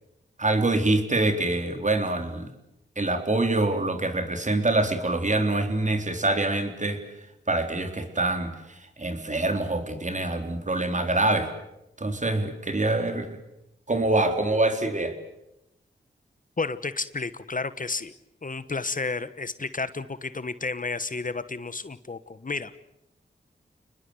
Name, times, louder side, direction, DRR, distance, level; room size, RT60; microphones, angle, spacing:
voice 1, 0.4-2.5 3.0-7.0 7.5-8.5 9.0-11.5 12.0-13.4 13.9-15.2, right 2 dB, 40° right, 6 dB, 3.9 m, -25 dB
voice 2, 16.6-18.1 18.4-22.9, left 3 dB, 45° left, 14 dB, 1.3 m, -32 dB
29.0 x 20.5 x 8.1 m, 0.86 s
cardioid pair, 50°, 19 cm